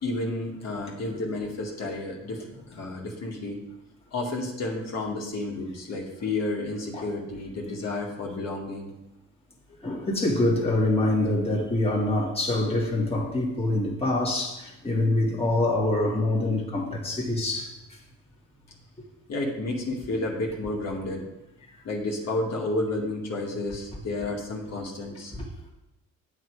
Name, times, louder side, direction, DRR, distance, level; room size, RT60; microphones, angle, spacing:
voice 1, 0.0-3.6 4.1-8.9 19.3-21.2 21.8-25.3, left 2 dB, 60° left, 2.2 m, -31 dB
voice 2, 9.8-17.7 25.3-25.5, left 2 dB, 20° left, 2.1 m, -25 dB
8.8 x 6.8 x 4.9 m
cardioid pair, 90°, 30 cm